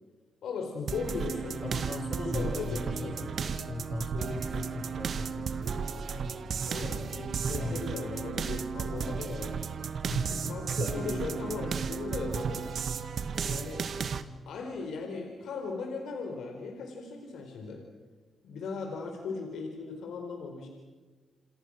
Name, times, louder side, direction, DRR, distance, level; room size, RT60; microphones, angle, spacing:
voice 1, 0.4-1.6 2.3-3.2 6.7-9.6 10.4-12.6 13.4-13.9 14.5-17.8 18.4-20.7, left 4 dB, 80° left, 3 dB, 4.2 m, -37 dB
sound 1, 0.9-14.2, right 6 dB, 65° right, 1.6 m, -34 dB
voice 2, 1.6-6.6 7.5-8.1 10.1-11.7, left 2 dB, 55° left, 7 dB, 5.3 m, -38 dB
29.0 x 27.5 x 6.4 m, 1.3 s
cardioid pair, 65°, 0 cm